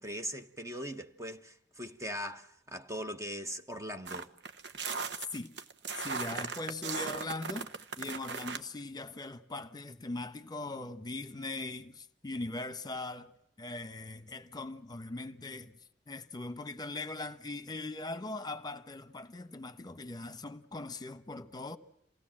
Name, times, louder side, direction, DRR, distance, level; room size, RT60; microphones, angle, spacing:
voice 1, 0.0-4.3, equal, 20° right, 0.9 m, -40 dB
sound 1, 4.1-8.6, right 5 dB, 85° right, 1.3 m, -38 dB
voice 2, 5.9-13.3 13.6-15.7 16.1-21.8, left 2 dB, 25° left, 1.1 m, -40 dB
28.0 x 18.0 x 7.5 m
head